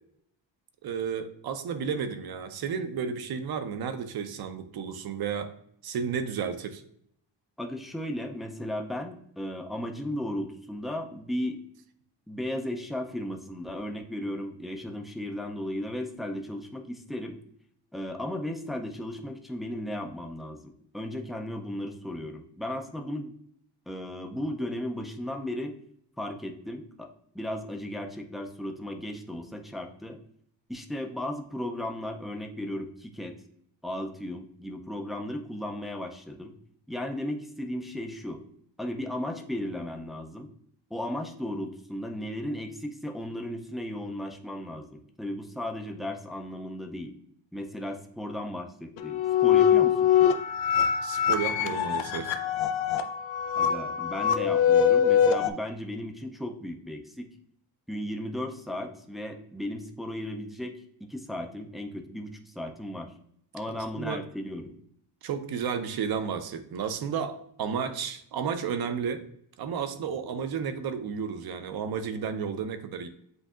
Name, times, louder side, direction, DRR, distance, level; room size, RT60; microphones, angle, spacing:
voice 1, 0.8-5.5 5.8-6.8 51.0-52.3 63.7-64.2 65.2-69.2 69.6-73.1, right 7 dB, 55° right, 10 dB, 0.6 m, -32 dB
voice 2, 7.6-11.6 12.3-17.4 17.9-23.3 23.9-25.8 26.2-27.1 27.3-30.2 30.7-33.4 33.8-36.5 36.9-38.4 38.8-40.5 40.9-47.1 47.5-50.3 53.6-57.3 57.9-60.7 61.0-63.1 63.5-64.8, left 1 dB, ahead, 3 dB, 0.3 m, -35 dB
sound 1, 49.0-55.5, left 8 dB, 85° left, 0.6 m, -23 dB
7.9 x 2.7 x 2.3 m, 0.68 s
cardioid pair, 135°, 44 cm